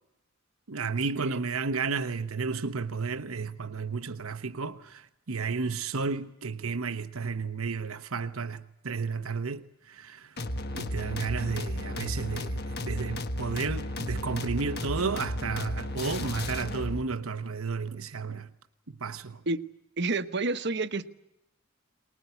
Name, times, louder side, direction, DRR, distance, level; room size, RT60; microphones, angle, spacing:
voice 1, 0.7-10.3 10.7-18.5 19.0-19.4, right 4 dB, 90° right, 1.0 m, -32 dB
sound 1, 10.4-17.1, left 1 dB, 50° left, 1.6 m, -34 dB
voice 2, 20.0-21.1, right 3 dB, 55° right, 1.1 m, -29 dB
24.0 x 20.0 x 8.2 m
head